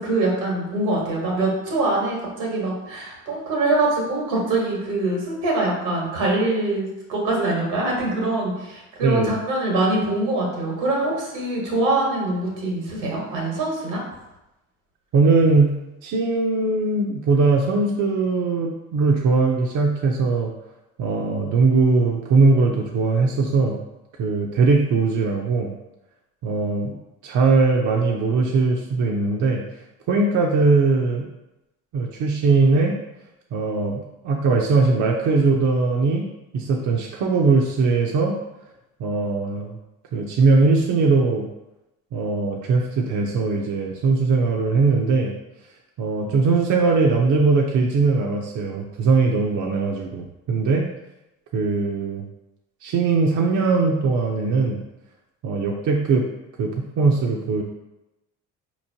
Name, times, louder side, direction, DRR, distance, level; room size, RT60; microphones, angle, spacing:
voice 1, 0.0-14.0, right 2 dB, 85° right, -2 dB, 1.4 m, -24 dB
voice 2, 9.0-9.4 15.1-15.7 16.0-20.5 21.0-23.8 24.2-25.7 26.4-27.0 27.2-29.6 30.1-31.3 31.9-32.9 33.5-36.3 36.5-38.3 39.0-39.8 40.1-41.5 42.1-45.3 46.0-50.9 51.5-52.2 52.8-54.8 55.4-56.3 56.6-57.6, right 4 dB, 55° right, 0 dB, 0.6 m, -20 dB
4.2 x 3.0 x 2.7 m, 0.95 s
supercardioid pair, 65°, 37 cm